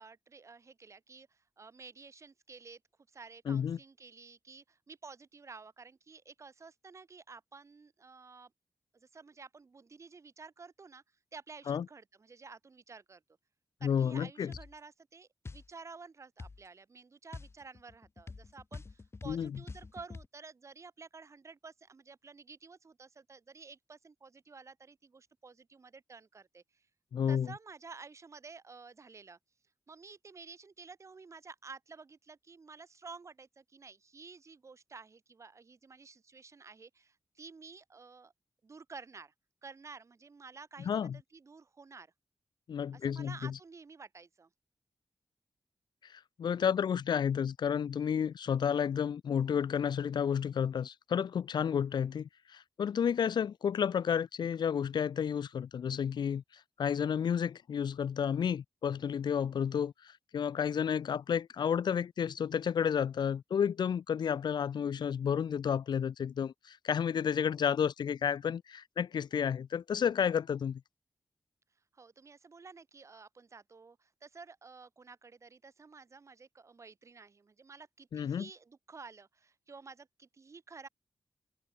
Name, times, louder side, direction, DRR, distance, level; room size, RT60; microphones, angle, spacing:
voice 1, 0.0-2.8 3.1-8.5 8.9-11.0 11.3-13.2 13.8-26.8 27.3-29.4 29.9-38.3 38.6-39.3 39.6-42.1 42.9-44.5 71.9-80.9, right 4 dB, 40° right, 2.6 m, -52 dB
voice 2, 3.5-3.8 11.7-11.8 13.8-14.5 19.2-19.6 27.1-27.5 40.8-41.2 42.7-43.5 46.1-56.4 56.8-70.8 78.1-78.5, left 8 dB, 75° left, 0.5 m, -31 dB
sound 1, 14.5-14.8 15.5-15.7 16.4-16.6 17.3-20.3, left 3 dB, 35° left, 4.3 m, -46 dB
wide cardioid pair, 150°, 8 cm